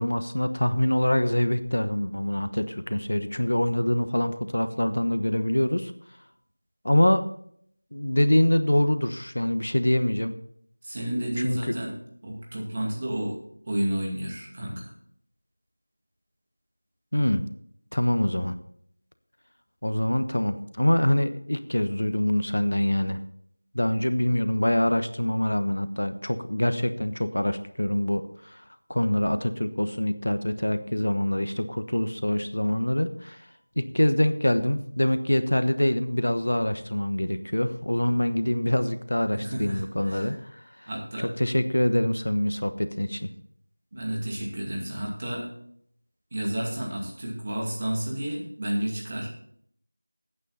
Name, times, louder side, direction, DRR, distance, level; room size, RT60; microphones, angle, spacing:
voice 1, 0.0-5.9 6.8-7.3 7.9-10.3 11.4-11.7 17.1-17.4 17.9-18.5 19.8-23.2 23.7-28.6 28.9-33.4 33.8-40.9 41.2-43.3, left 1 dB, 75° left, 10 dB, 1.1 m, -25 dB
voice 2, 10.8-11.9 12.2-13.4 13.7-14.9 39.3-40.3 40.9-41.3 43.9-45.5 46.3-49.3, right 1 dB, 25° right, -2 dB, 2.4 m, -31 dB
13.5 x 9.0 x 4.2 m, 0.66 s
figure-of-eight pair, 175°, 0 cm